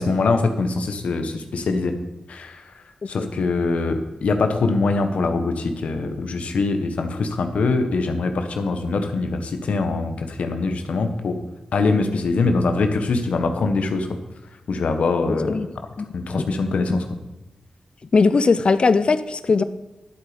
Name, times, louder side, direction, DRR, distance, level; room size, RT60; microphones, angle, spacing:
voice 1, 0.0-1.9 2.3-2.6 3.1-11.4 11.7-14.1 14.7-15.5 16.1-17.0, left 3 dB, 90° left, 7 dB, 1.3 m, -23 dB
voice 2, 18.1-19.6, left 4 dB, 50° left, 13 dB, 0.5 m, -19 dB
11.5 x 8.2 x 5.1 m, 1.1 s
wide cardioid pair, 75°, 2 cm